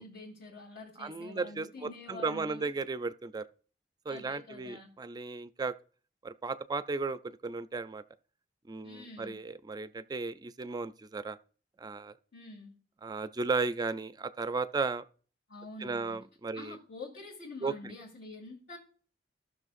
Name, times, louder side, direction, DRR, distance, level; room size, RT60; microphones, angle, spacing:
voice 1, 0.0-2.7 4.1-4.9 8.8-9.4 12.3-12.8 15.5-16.2 16.5-18.8, left 2 dB, 75° left, 2.4 m, -46 dB
voice 2, 1.0-3.5 4.1-5.7 6.2-8.0 8.7-11.4 11.8-12.1 13.0-15.0 15.8-16.8 17.6-17.9, right 4 dB, 20° right, 0.3 m, -35 dB
14.5 x 6.3 x 2.5 m
head